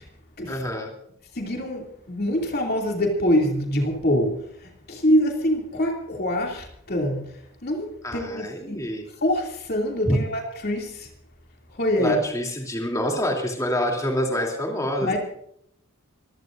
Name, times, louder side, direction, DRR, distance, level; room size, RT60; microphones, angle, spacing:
voice 1, 0.5-0.9 8.0-9.1 10.1-10.2 12.0-15.2, equal, 15° left, 0 dB, 3.1 m, -26 dB
voice 2, 1.3-8.9 9.2-11.1 11.7-12.2 15.0-15.2, equal, 45° left, 1 dB, 2.8 m, -25 dB
25.0 x 16.5 x 2.6 m, 0.70 s
head